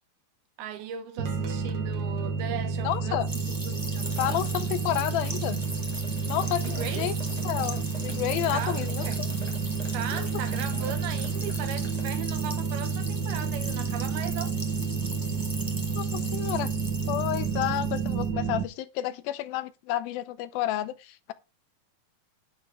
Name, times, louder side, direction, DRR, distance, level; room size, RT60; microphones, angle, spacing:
voice 1, 0.6-4.4 6.6-7.2 8.5-9.2 9.9-14.6, right 9 dB, 85° right, 3.2 m, -38 dB
sound 1, 1.2-18.6, right 5 dB, 65° right, 1.0 m, -30 dB
voice 2, 2.8-3.3 4.2-5.6 6.2-7.1 7.4-9.3 10.1-10.3 15.9-16.7 17.1-21.3, left 13 dB, 85° left, 2.6 m, -30 dB
sound 2, 3.3-18.3, right 1 dB, 35° right, 0.3 m, -40 dB
sound 3, 4.0-12.0, right 1 dB, 10° right, 2.6 m, -48 dB
10.5 x 6.7 x 4.9 m
omnidirectional pair, 4.3 m